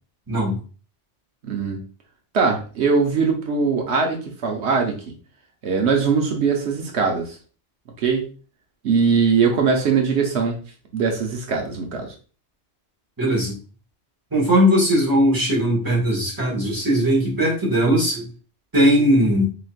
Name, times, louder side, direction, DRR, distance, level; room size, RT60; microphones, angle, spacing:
voice 1, 1.4-1.8 2.3-4.9 5.6-7.4 8.0-8.3 8.8-10.6 10.9-12.1, right 5 dB, 80° right, 2 dB, 1.1 m, -21 dB
voice 2, 13.2-13.6 14.3-18.3 18.7-19.4, equal, 20° right, -4 dB, 1.6 m, -19 dB
4.9 x 3.0 x 2.4 m, 0.37 s
omnidirectional pair, 1.1 m